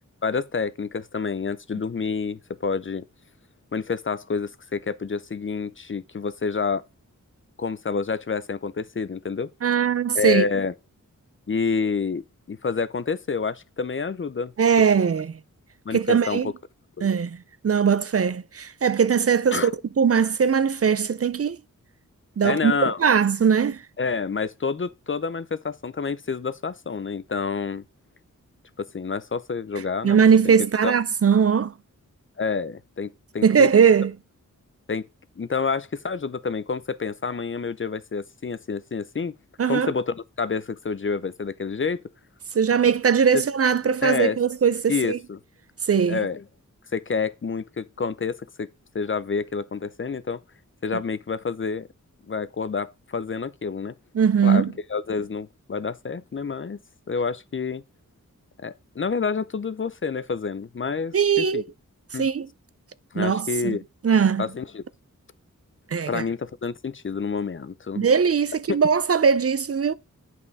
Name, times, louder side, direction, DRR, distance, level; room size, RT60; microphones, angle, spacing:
voice 1, 0.2-3.0 3.7-6.8 7.6-9.5 10.1-10.7 11.5-14.5 15.9-16.5 17.0-17.1 19.5-19.7 22.4-23.0 24.0-27.8 28.8-30.5 30.8-30.9 32.4-33.7 34.9-35.0 35.4-39.3 39.7-42.0 43.3-43.4 44.0-44.4 44.9-45.4 46.1-46.4 46.9-48.7 48.9-50.4 50.8-51.9 52.3-53.9 54.4-54.6 54.9-56.8 57.1-57.8 58.6-61.6 62.1-62.3 63.1-63.8 64.4-64.8 66.1-68.1 68.7-68.8, left 5 dB, 40° left, 0.6 m, -28 dB
voice 2, 9.6-10.4 14.6-15.4 15.9-16.5 17.0-17.4 17.6-19.7 20.0-21.6 22.4-23.8 30.0-31.7 33.4-34.1 39.6-39.9 42.5-45.2 45.9-46.2 54.1-54.7 61.1-61.6 62.2-62.5 63.2-63.8 64.0-64.5 65.9-66.2 68.0-69.9, right 6 dB, 50° right, 0.5 m, -20 dB
9.1 x 5.6 x 4.0 m
wide cardioid pair, 105°, 32 cm